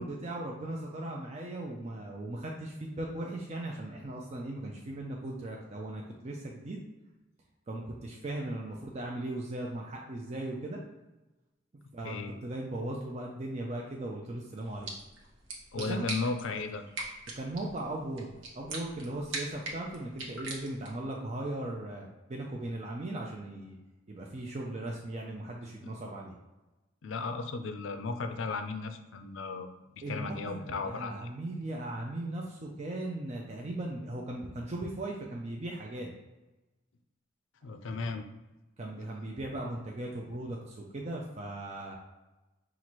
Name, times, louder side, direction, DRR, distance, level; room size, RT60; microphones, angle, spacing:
voice 1, 0.0-6.8 7.7-10.8 11.9-14.9 15.8-16.1 17.3-18.3 18.5-23.8 24.1-26.3 30.0-36.1 38.8-42.0, right 1 dB, 35° right, -1 dB, 0.4 m, -38 dB
sound 1, 14.6-21.1, right 2 dB, 70° right, 0.9 m, -42 dB
voice 2, 15.7-16.8 25.8-25.9 27.0-29.7 29.9-31.3 37.6-38.3, left 4 dB, 75° left, 8 dB, 0.4 m, -35 dB
5.6 x 2.5 x 3.0 m, 1.1 s
head